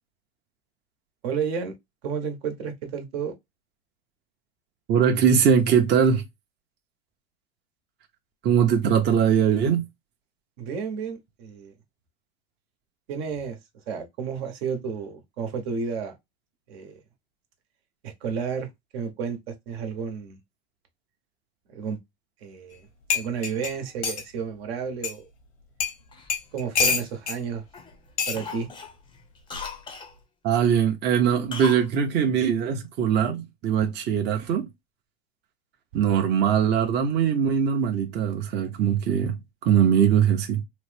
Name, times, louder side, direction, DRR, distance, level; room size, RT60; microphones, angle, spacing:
voice 1, 1.2-1.7 2.0-3.3 10.6-11.7 13.1-13.6 13.9-16.1 16.7-16.9 18.0-20.4 21.7-22.0 22.4-22.9 23.1-25.2 26.5-27.6 28.3-28.7, right 6 dB, 70° right, 1.0 m, -31 dB
voice 2, 4.9-6.2 8.4-9.8 30.4-34.7 35.9-40.6, right 8 dB, 35° right, 0.6 m, -21 dB
sound 1, 22.7-22.8 23.1-24.3 25.0-25.1 25.8-26.0 26.3-27.4 28.2-28.4 29.5-29.8, left 6 dB, 90° left, 1.1 m, -26 dB
Cough, 26.1-27.4 27.7-28.0 28.3-30.1 31.5-31.9 32.1-32.2, left 5 dB, 15° left, 0.5 m, -39 dB
3.0 x 2.0 x 3.2 m
hypercardioid pair, 100°, 33 cm